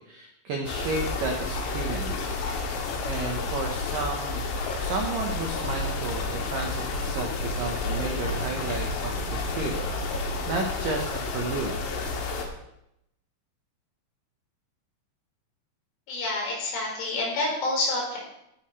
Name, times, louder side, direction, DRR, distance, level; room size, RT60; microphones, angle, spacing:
voice 1, 0.1-2.3 3.0-4.5 4.8-9.7 10.0-11.8, right 3 dB, 75° right, 1 dB, 2.0 m, -32 dB
sound 1, 0.7-12.5, left 3 dB, 90° left, 4.5 m, -31 dB
sound 2, 5.5-10.6, right 1 dB, 55° left, 3.4 m, -39 dB
voice 2, 16.1-18.2, left 2 dB, 70° left, -4 dB, 7.3 m, -28 dB
17.5 x 11.0 x 3.3 m, 0.80 s
omnidirectional pair, 5.7 m